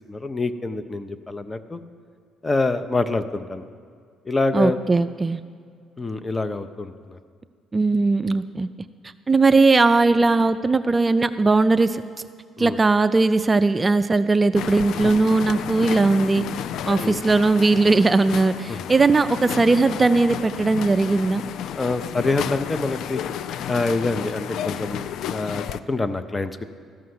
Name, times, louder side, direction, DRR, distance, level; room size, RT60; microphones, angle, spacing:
voice 1, 0.1-1.8 2.4-3.6 4.3-4.8 6.0-7.2 12.6-12.8 17.0-17.2 18.7-18.8 21.7-23.2 23.7-26.6, left 3 dB, 20° left, 11 dB, 0.6 m, -26 dB
voice 2, 4.5-5.4 7.7-8.7 9.3-12.0 12.6-16.4 16.8-21.4, right 3 dB, 25° right, 10 dB, 0.3 m, -19 dB
sound 1, 14.6-25.8, left 9 dB, 70° left, 0.3 m, -32 dB
14.0 x 5.6 x 7.8 m, 2.1 s
cardioid pair, 85°, 0 cm